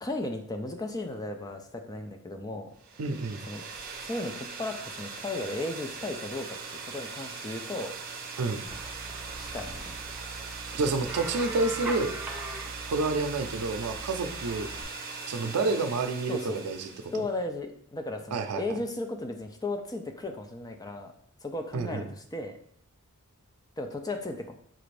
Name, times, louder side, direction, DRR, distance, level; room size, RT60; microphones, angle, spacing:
voice 1, 0.0-2.7 3.5-3.6 4.0-6.6 6.8-7.9 9.4-9.7 16.3-16.7 17.1-21.1 21.4-22.6 23.8-24.5, left 2 dB, 15° left, 5 dB, 0.4 m, -35 dB
sound 1, 2.8-17.3, right 4 dB, 40° right, 0.6 m, -40 dB
voice 2, 3.0-3.5 8.4-8.6 10.7-12.1 12.9-14.7 15.3-16.9 17.1-17.2 18.3-18.8 21.7-22.1, right 3 dB, 85° right, 8 dB, 0.5 m, -29 dB
sound 2, 8.7-14.8, right 2 dB, 5° right, 0.7 m, -40 dB
5.9 x 2.5 x 3.2 m, 0.66 s
head